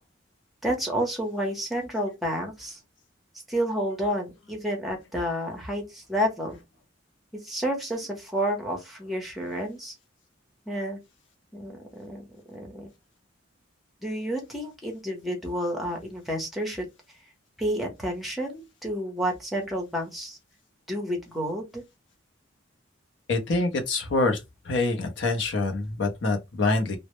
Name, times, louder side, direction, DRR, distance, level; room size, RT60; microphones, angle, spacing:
voice 1, 0.6-2.8 3.5-6.6 7.4-9.9 10.7-11.0 11.5-12.9 14.0-16.9 17.6-20.4 20.9-21.8, equal, ahead, 0.7 m, -30 dB
voice 2, 23.3-24.4 24.7-27.0, left 2 dB, 70° left, 0.6 m, -25 dB
2.0 x 2.0 x 3.0 m
head